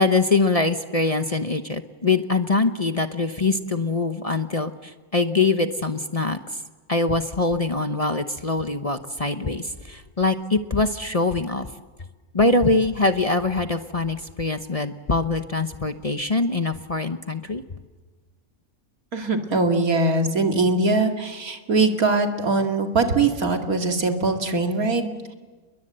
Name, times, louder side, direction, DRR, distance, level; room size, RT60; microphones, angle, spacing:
voice 1, 0.0-6.6 6.9-11.7 12.3-17.6, left 3 dB, 30° left, 8 dB, 0.9 m, -23 dB
voice 2, 19.1-25.3, right 3 dB, 80° right, 4 dB, 2.8 m, -22 dB
29.5 x 21.5 x 7.7 m, 1.3 s
omnidirectional pair, 1.5 m